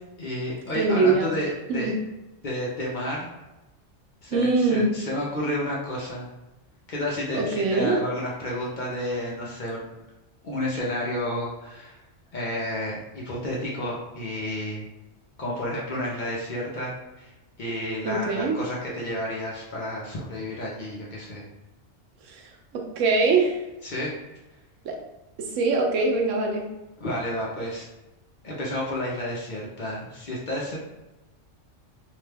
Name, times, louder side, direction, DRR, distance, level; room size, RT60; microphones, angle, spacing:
voice 1, 0.2-1.9 2.4-3.3 4.2-6.3 6.9-9.9 10.4-12.0 12.3-14.9 15.4-17.3 17.6-21.4 23.8-24.1 27.0-27.9 28.4-30.8, left 1 dB, 50° left, -5 dB, 0.7 m, -31 dB
voice 2, 0.7-1.3 1.7-2.0 4.3-4.9 7.3-8.0 18.0-18.5 22.2-23.6 24.8-25.0 25.4-26.7, right 3 dB, 85° right, 1 dB, 1.0 m, -23 dB
2.8 x 2.2 x 3.3 m, 1.0 s
omnidirectional pair, 1.3 m